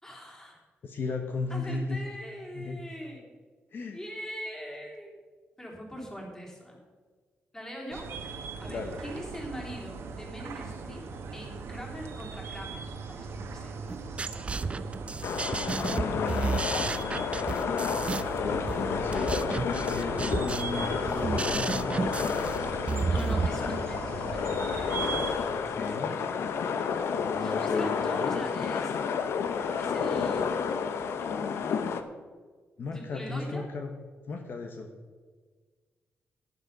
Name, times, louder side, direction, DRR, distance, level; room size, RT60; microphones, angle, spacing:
voice 1, 0.0-0.6 1.5-3.3 3.9-5.2 5.6-6.8 7.5-8.1 8.6-11.0 11.3-13.7 23.1-25.1 25.6-26.1 27.3-29.0 29.8-31.0 32.9-33.6, equal, 15° left, -1 dB, 3.2 m, -42 dB
voice 2, 0.8-2.0 2.5-2.8 3.7-4.0 8.7-9.0 15.9-16.5 18.4-19.3 19.9-22.0 25.4-26.1 27.2-28.4 32.8-33.9 34.3-34.9, left 4 dB, 55° left, 4 dB, 1.1 m, -35 dB
sound 1, 7.9-25.4, right 4 dB, 85° right, 1.5 m, -39 dB
sound 2, 13.9-23.5, right 4 dB, 30° right, 0.5 m, -32 dB
sound 3, 15.2-32.0, left 6 dB, 80° left, 0.8 m, -30 dB
11.0 x 9.6 x 5.4 m, 1.5 s
cardioid pair, 100°, 4 cm